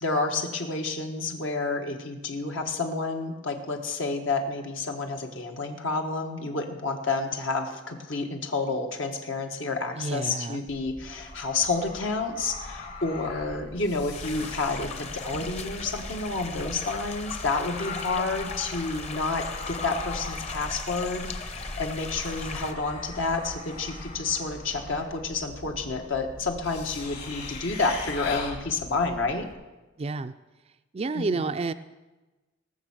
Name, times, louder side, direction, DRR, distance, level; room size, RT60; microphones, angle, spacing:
voice 1, 0.0-29.5 31.1-31.5, left 3 dB, 75° left, 3 dB, 1.4 m, -30 dB
voice 2, 9.9-10.6 30.0-30.3 30.9-31.7, right 3 dB, 30° right, 10 dB, 0.4 m, -29 dB
sound 1, 10.7-29.5, left 3 dB, 55° left, 2.5 m, -40 dB
sound 2, 14.1-22.7, left 3 dB, 35° left, 0.9 m, -38 dB
19.0 x 6.4 x 7.2 m, 1.1 s
head